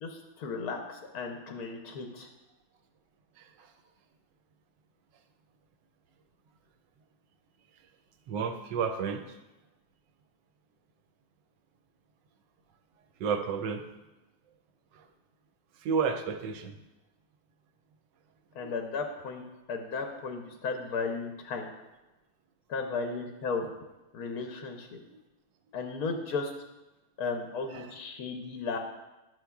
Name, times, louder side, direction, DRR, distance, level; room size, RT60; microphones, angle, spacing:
voice 1, 0.0-2.3 18.5-19.4 19.7-21.6 22.7-23.7 24.1-25.0 25.7-26.5 27.2-28.8, left 4 dB, 65° left, 3 dB, 0.9 m, -35 dB
voice 2, 3.4-3.7 8.3-9.4 13.2-13.8 15.8-16.7 18.6-18.7 27.7-27.9, right 6 dB, 70° right, 6 dB, 1.1 m, -31 dB
11.0 x 6.2 x 2.3 m, 1.0 s
omnidirectional pair, 2.3 m